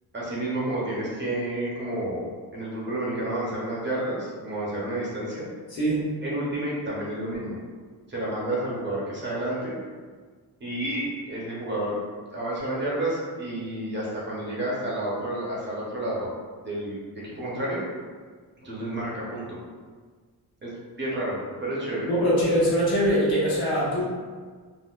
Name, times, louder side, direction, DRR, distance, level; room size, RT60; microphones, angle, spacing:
voice 1, 0.1-5.4 6.2-7.6 8.1-9.8 10.6-12.0 12.3-16.3 16.6-17.8 18.6-19.6 20.6-20.7 21.0-22.1, right 1 dB, 30° right, -6 dB, 0.6 m, -30 dB
voice 2, 5.7-6.1 22.1-24.1, equal, 70° left, -7 dB, 1.0 m, -22 dB
3.7 x 2.0 x 2.2 m, 1.5 s
wide cardioid pair, 175°, 39 cm